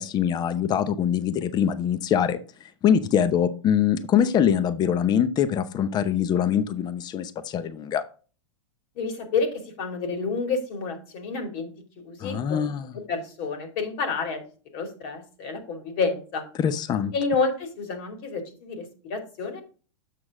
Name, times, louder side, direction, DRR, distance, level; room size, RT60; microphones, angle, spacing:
voice 1, 0.0-8.0 12.2-12.9 16.6-17.1, left 8 dB, 25° left, 14 dB, 0.7 m, -23 dB
voice 2, 9.0-12.7 13.1-14.4 14.7-16.4 17.1-19.6, left 4 dB, 50° left, 5 dB, 2.6 m, -29 dB
7.5 x 6.2 x 3.7 m, 0.37 s
hypercardioid pair, 110°, 16 cm